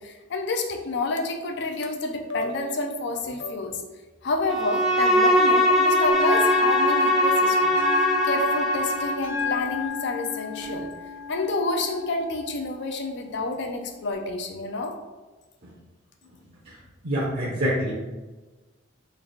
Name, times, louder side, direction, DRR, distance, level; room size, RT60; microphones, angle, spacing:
voice 1, 0.0-3.8 4.2-10.9 11.3-14.9, left 3 dB, 65° left, 4 dB, 0.5 m, -29 dB
Bowed string instrument, 4.5-9.3, equal, ahead, 0.4 m, -21 dB
Bell, 6.1-14.1, left 5 dB, 85° left, 1.2 m, -33 dB
voice 2, 17.0-17.9, equal, 50° right, -5 dB, 0.7 m, -26 dB
3.2 x 2.4 x 3.9 m, 1.2 s
head